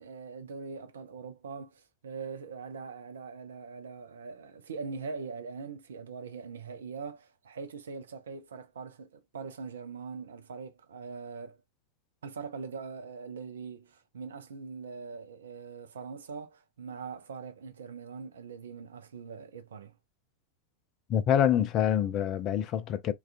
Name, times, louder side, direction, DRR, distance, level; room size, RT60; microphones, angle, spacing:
voice 1, 0.0-11.6 12.2-19.9, right 5 dB, 65° right, 0.4 m, -42 dB
voice 2, 21.1-23.1, left 9 dB, 35° left, 0.4 m, -26 dB
2.3 x 2.3 x 2.4 m
figure-of-eight pair, 90°, 0 cm